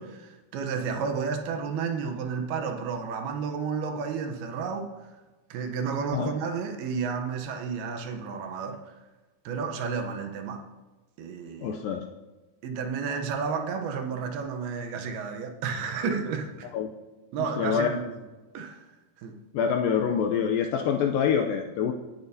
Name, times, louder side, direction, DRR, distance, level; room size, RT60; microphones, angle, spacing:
voice 1, 0.0-4.9 5.5-8.9 9.5-10.6 11.2-11.8 12.6-16.7 17.3-18.2 18.5-18.8 19.2-19.4, right 5 dB, 75° right, 5 dB, 2.8 m, -32 dB
voice 2, 11.6-12.0 16.7-16.9 17.6-17.9 19.5-21.9, left 7 dB, 80° left, 4 dB, 2.0 m, -25 dB
19.0 x 8.8 x 2.7 m, 1.2 s
omnidirectional pair, 4.6 m